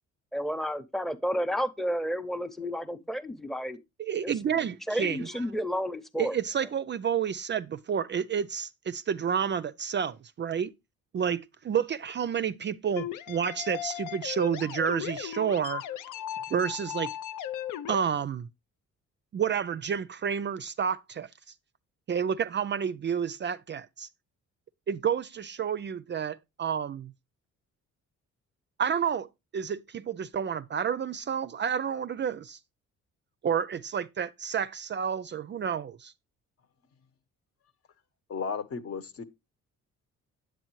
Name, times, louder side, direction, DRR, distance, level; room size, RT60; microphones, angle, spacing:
voice 1, 0.3-3.8 4.2-4.3 4.9-6.4, equal, ahead, 0.7 m, -31 dB
voice 2, 4.0-5.3 6.2-10.7 11.1-15.8 16.5-17.1 17.9-18.5 19.3-21.3 22.1-24.1 24.9-27.1 28.8-29.3 29.5-32.6 33.4-36.1, right 7 dB, 40° right, 0.4 m, -30 dB
sound 1, 13.0-18.0, left 10 dB, 85° left, 0.7 m, -37 dB
voice 3, 38.3-39.2, left 5 dB, 50° left, 1.1 m, -34 dB
8.9 x 7.9 x 3.0 m
cardioid pair, 90°, 30 cm